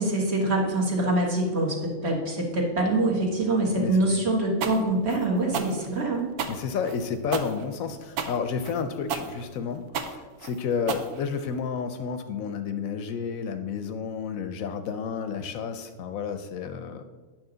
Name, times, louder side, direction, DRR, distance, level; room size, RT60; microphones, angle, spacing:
voice 1, 0.0-6.3, right 2 dB, 45° right, -1 dB, 1.5 m, -25 dB
voice 2, 3.7-4.2 6.5-17.0, left 6 dB, 70° left, 8 dB, 0.9 m, -31 dB
sound 1, 4.6-11.7, right 6 dB, 90° right, 1.2 m, -33 dB
8.9 x 5.9 x 3.8 m, 1.4 s
omnidirectional pair, 1.6 m